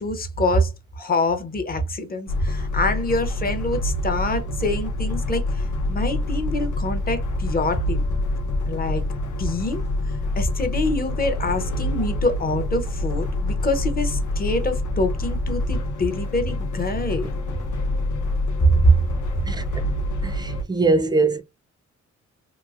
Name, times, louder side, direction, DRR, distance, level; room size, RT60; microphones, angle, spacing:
voice 1, 0.0-8.0 8.7-9.1 9.4-9.8 10.4-17.3 18.6-19.0, left 1 dB, 30° left, 0.6 m, -24 dB
sound 1, 2.3-20.6, left 1 dB, 80° left, 0.7 m, -26 dB
voice 2, 20.2-21.4, right 3 dB, 15° right, 0.4 m, -21 dB
3.0 x 2.7 x 2.3 m
wide cardioid pair, 125°, 29 cm